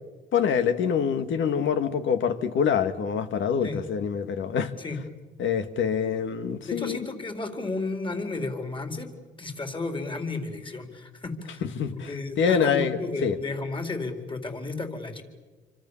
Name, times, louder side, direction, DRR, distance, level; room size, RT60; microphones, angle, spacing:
voice 1, 0.3-4.7 5.4-7.0 11.8-13.4, left 7 dB, 75° left, 10 dB, 2.0 m, -25 dB
voice 2, 6.7-9.1 9.4-15.2, left 3 dB, 25° left, 6 dB, 4.4 m, -33 dB
28.0 x 25.5 x 7.3 m, 1.3 s
cardioid pair, 90°, 20 cm